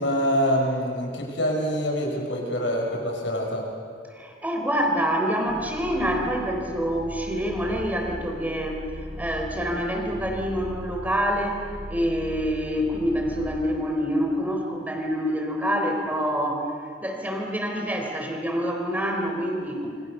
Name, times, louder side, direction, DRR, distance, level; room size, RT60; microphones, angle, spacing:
voice 1, 0.0-3.7, equal, 85° left, 0 dB, 6.5 m, -25 dB
voice 2, 4.1-16.7 17.0-19.9, equal, 10° right, 1 dB, 4.1 m, -26 dB
sound 1, 5.4-13.7, equal, 70° right, 6.0 m, -39 dB
27.5 x 25.0 x 6.8 m, 2.3 s
head